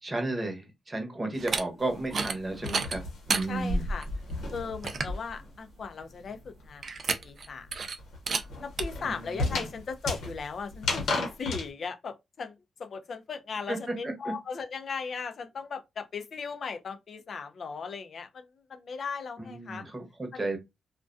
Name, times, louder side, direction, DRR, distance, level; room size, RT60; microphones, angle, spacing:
voice 1, 0.0-3.0 3.3-3.9 9.0-9.7 13.7-13.8 14.0-14.3 19.4-20.6, right 2 dB, 30° right, 0.9 m, -33 dB
sound 1, 1.3-1.6 2.1-2.4 2.7-3.5 4.0-4.1 4.5-4.6 4.8-5.2 6.8-7.5 7.7-8.0 8.3-8.4 8.8-8.9, right 5 dB, 60° right, 0.4 m, -30 dB
sound 2, 1.8-5.5 5.8-11.7, left 2 dB, 85° left, 0.9 m, -34 dB
voice 2, 3.5-4.1 4.5-6.9 7.2-7.7 8.6-19.8 20.3-20.4, left 5 dB, 60° left, 0.4 m, -37 dB
2.3 x 2.1 x 2.5 m
cardioid pair, 65°, 0 cm